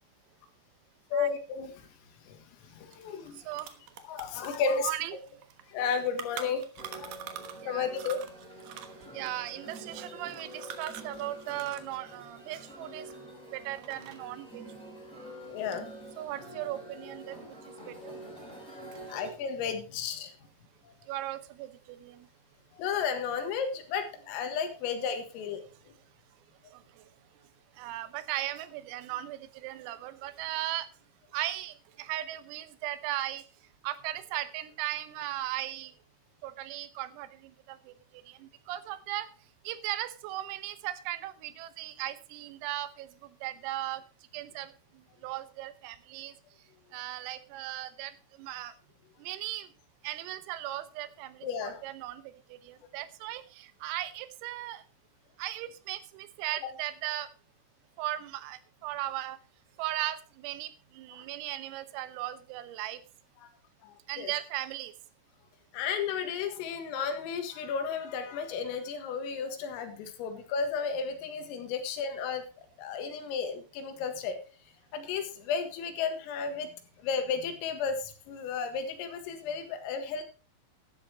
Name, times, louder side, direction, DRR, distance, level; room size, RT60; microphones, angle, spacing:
voice 1, 1.1-1.9 2.3-3.5 4.0-4.9 5.7-7.2 7.7-8.2 15.5-15.9 19.1-20.3 20.8-20.9 22.7-25.6 51.4-51.8 56.6-56.7 63.4-63.5 63.8-64.3 65.7-72.5 72.8-74.4 74.9-76.7 77.0-80.2, left 6 dB, 90° left, 7 dB, 4.3 m, -33 dB
sound 1, 2.9-3.0 3.3-7.7 7.9-12.0 12.2-13.4 13.7-14.4, right 10 dB, 70° right, 2.2 m, -45 dB
voice 2, 3.3-3.7 4.8-5.2 7.1-7.2 7.6-7.9 8.7-13.2 13.5-14.6 16.2-18.1 21.1-22.3 26.7-27.1 27.8-30.9 31.3-33.4 33.8-35.9 36.4-39.3 39.7-44.0 44.3-46.4 46.9-48.7 49.2-49.7 50.0-54.8 55.4-57.3 58.0-59.4 59.8-63.0 64.1-64.9, right 14 dB, 90° right, 13 dB, 3.7 m, -37 dB
sound 2, 6.8-19.3, right 1 dB, ahead, 4.5 m, -46 dB
14.0 x 12.0 x 3.0 m, 0.35 s
omnidirectional pair, 5.9 m